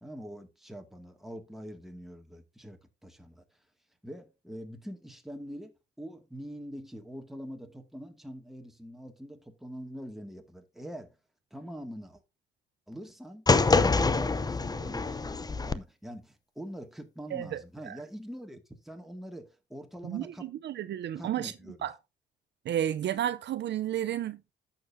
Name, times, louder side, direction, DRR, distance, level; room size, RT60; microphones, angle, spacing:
voice 1, 0.0-3.4 4.0-11.2 11.5-12.2 12.9-15.2 15.6-20.5 21.2-21.8, equal, ahead, 2.0 m, -44 dB
sound 1, 13.5-15.7, left 4 dB, 20° left, 0.7 m, -25 dB
voice 2, 17.3-18.0 20.0-21.5 21.8-21.9 22.6-24.5, right 11 dB, 60° right, 0.6 m, -32 dB
11.0 x 7.4 x 2.7 m
cardioid pair, 90°, 20 cm